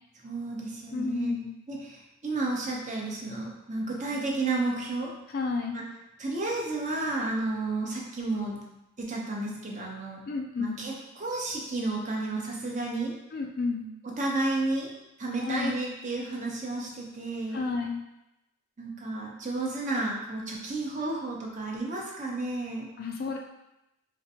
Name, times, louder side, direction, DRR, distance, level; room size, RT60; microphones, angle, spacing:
voice 1, 0.2-1.4 1.7-5.1 5.7-5.8 6.2-8.6 9.0-10.2 10.6-13.1 14.2-14.9 15.2-17.6 18.8-22.9, right 2 dB, 35° right, -2 dB, 0.6 m, -32 dB
voice 2, 0.9-1.5 5.3-5.8 10.3-10.8 13.3-13.9 15.4-15.8 17.5-18.0 23.0-23.4, left 4 dB, 45° left, 2 dB, 0.3 m, -31 dB
4.2 x 2.5 x 2.7 m, 0.92 s
head